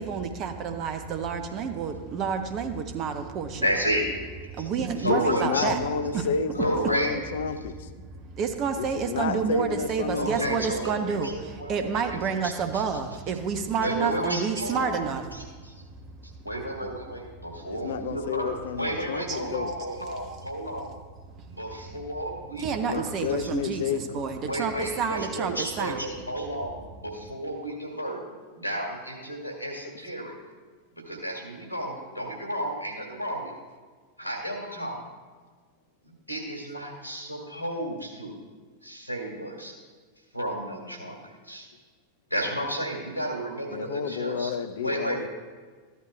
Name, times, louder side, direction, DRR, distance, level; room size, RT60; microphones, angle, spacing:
voice 1, 0.0-3.7 4.5-5.9 6.1-6.3 8.1-15.2 18.0-18.1 19.3-19.4 22.6-26.0, right 6 dB, 35° right, 6 dB, 0.8 m, -29 dB
voice 2, 3.5-4.0 4.6-4.7 5.0-5.7 6.6-7.1 10.1-12.8 13.8-15.0 15.3-15.7 16.2-20.9 21.4-23.0 23.4-23.5 24.4-28.2 28.6-30.3 31.0-33.5 34.2-35.0 36.3-38.4 38.8-39.7 40.3-41.2 41.4-41.7 42.3-44.5 44.8-45.2, right 1 dB, 90° right, 0 dB, 2.0 m, -32 dB
voice 3, 5.0-7.9 8.8-10.6 17.7-19.7 22.9-24.3 43.7-45.3, left 6 dB, 60° left, 11 dB, 0.5 m, -30 dB
13.5 x 11.0 x 2.2 m, 1.5 s
figure-of-eight pair, 90°, 0 cm